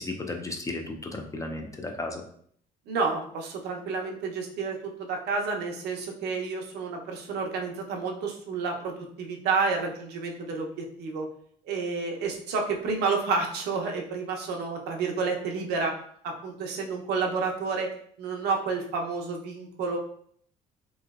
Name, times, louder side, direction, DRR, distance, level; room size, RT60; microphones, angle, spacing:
voice 1, 0.0-2.2, left 2 dB, 20° left, 3 dB, 0.4 m, -34 dB
voice 2, 2.9-11.3 11.6-16.0 16.2-20.0, right 4 dB, 75° right, 1 dB, 0.6 m, -30 dB
3.0 x 2.8 x 2.3 m, 0.62 s
cardioid pair, 110°, 17 cm